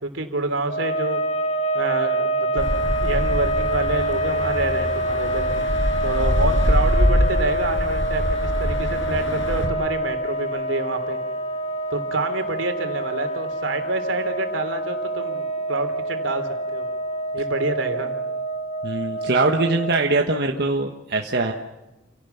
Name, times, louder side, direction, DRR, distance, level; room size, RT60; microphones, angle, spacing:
voice 1, 0.0-1.2 1.7-2.7 3.0-5.5 6.0-11.2 11.9-16.8 17.3-18.1, right 2 dB, 85° right, 6 dB, 3.4 m, -27 dB
sound 1, 0.7-20.3, right 1 dB, 35° left, 1.4 m, -26 dB
sound 2, 2.6-9.7, equal, 75° left, 5.7 m, -24 dB
voice 2, 18.8-21.5, right 3 dB, 55° right, 2 dB, 1.4 m, -22 dB
28.5 x 17.5 x 7.2 m, 1.0 s
head